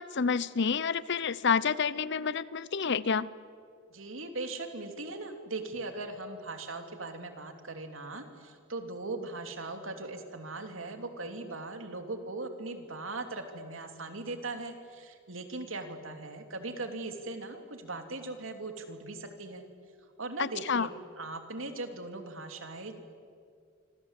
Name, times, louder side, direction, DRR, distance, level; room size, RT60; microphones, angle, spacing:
voice 1, 0.0-3.3 20.4-20.9, left 6 dB, 60° left, 18 dB, 0.8 m, -29 dB
voice 2, 3.9-19.6 20.2-22.9, right 2 dB, 75° right, 6 dB, 3.1 m, -39 dB
27.0 x 25.5 x 8.3 m, 2.2 s
head